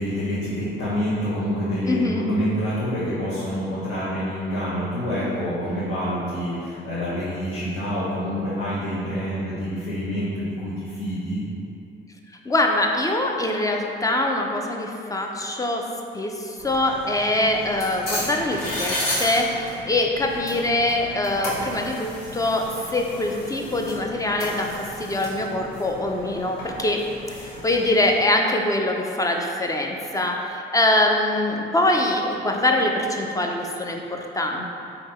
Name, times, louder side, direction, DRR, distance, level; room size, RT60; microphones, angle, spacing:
voice 1, 0.0-11.4, equal, 80° left, -11 dB, 1.1 m, -27 dB
voice 2, 1.9-2.3 12.5-15.9 16.1-27.0 27.6-34.7, left 1 dB, 15° left, 2 dB, 0.4 m, -23 dB
sound 1, 16.6-28.1, left 1 dB, 50° left, 1.4 m, -34 dB
3.6 x 2.8 x 4.3 m, 2.6 s
cardioid pair, 90°, 20 cm